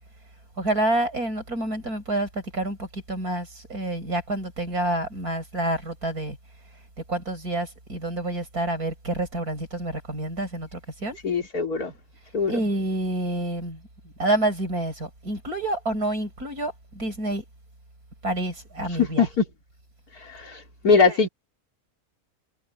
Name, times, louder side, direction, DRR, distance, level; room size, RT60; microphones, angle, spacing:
voice 1, 0.6-6.4 7.1-11.2 12.5-13.8 14.2-17.4 18.2-19.3 20.9-21.0, right 1 dB, 80° right, 7.1 m, -28 dB
voice 2, 11.2-11.9 12.3-12.6 19.0-19.5 20.1-21.3, left 5 dB, 80° left, 3.5 m, -22 dB
omnidirectional pair, 1.6 m